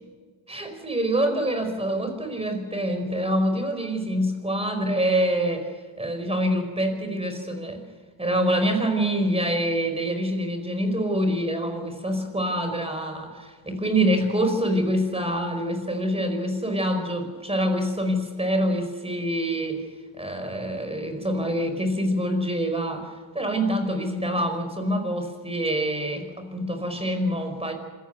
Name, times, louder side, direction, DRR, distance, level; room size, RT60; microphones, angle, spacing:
voice 1, 0.5-5.7 6.0-7.8 8.2-19.8 20.2-27.7, equal, 10° right, 6 dB, 5.0 m, -26 dB
26.5 x 16.0 x 6.8 m, 1.5 s
cardioid pair, 95°, 49 cm